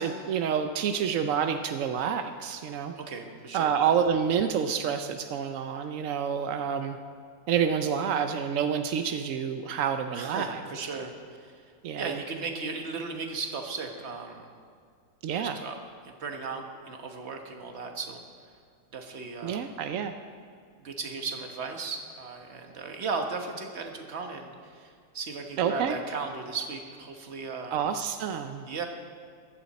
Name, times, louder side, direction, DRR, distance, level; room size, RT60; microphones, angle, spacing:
voice 1, 0.0-2.9 3.5-7.0 7.5-10.8 11.8-12.1 15.2-15.6 19.4-20.1 25.6-26.0 27.7-28.7, right 7 dB, 75° right, 7 dB, 0.7 m, -28 dB
voice 2, 3.0-3.8 10.1-11.1 11.4-11.6 12.0-14.5 15.3-15.8 16.0-18.2 18.9-19.6 20.8-27.7 28.7-28.9, right 4 dB, 40° right, 3 dB, 1.3 m, -36 dB
15.5 x 12.5 x 4.2 m, 2.2 s
omnidirectional pair, 2.0 m